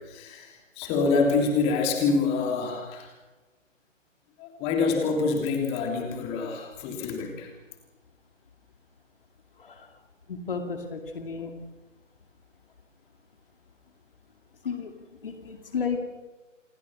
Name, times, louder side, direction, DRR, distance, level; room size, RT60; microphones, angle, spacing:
voice 1, 0.0-3.1 4.4-7.5, left 4 dB, 15° left, 3 dB, 3.1 m, -26 dB
voice 2, 10.3-11.5 14.6-14.9 15.2-16.0, left 5 dB, 45° left, 5 dB, 2.4 m, -32 dB
28.0 x 20.5 x 6.7 m, 1.2 s
figure-of-eight pair, 140°, 39 cm